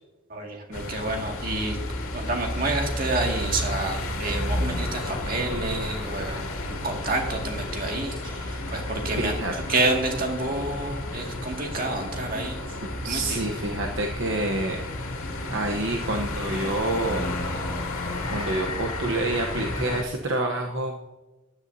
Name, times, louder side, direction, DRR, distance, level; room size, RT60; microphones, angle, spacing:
voice 1, 0.3-1.8 2.1-9.3 9.7-12.6 13.0-13.4, right 2 dB, 40° right, 2 dB, 2.1 m, -29 dB
sound 1, 0.7-20.0, left 1 dB, 80° left, 2.2 m, -32 dB
voice 2, 9.2-9.5 12.8-14.8 15.5-17.3 18.3-20.9, right 2 dB, 55° right, 2 dB, 1.0 m, -28 dB
14.5 x 10.5 x 2.8 m, 1.1 s
head